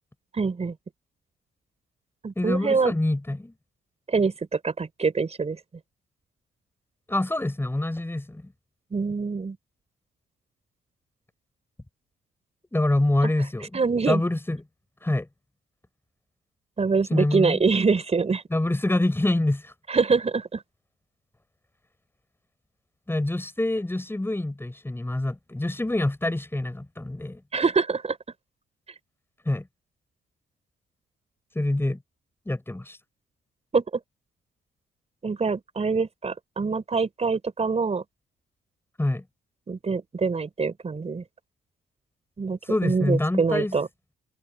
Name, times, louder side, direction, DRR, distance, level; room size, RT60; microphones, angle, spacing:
voice 1, 0.3-0.7 2.2-2.9 4.1-5.6 8.9-9.6 13.2-13.3 13.7-14.2 16.8-18.4 19.9-20.6 27.5-28.2 33.7-33.8 35.2-38.0 39.7-41.2 42.4-43.9, right 4 dB, 30° right, 4.9 m, -25 dB
voice 2, 2.4-3.5 7.1-8.5 12.7-13.8 14.1-14.6 15.0-15.3 17.1-17.6 18.5-19.7 23.1-27.4 29.5-29.7 31.5-32.0 32.5-33.0 39.0-39.2 42.7-43.7, left 1 dB, 10° left, 7.6 m, -26 dB
cardioid pair, 90°, 20 cm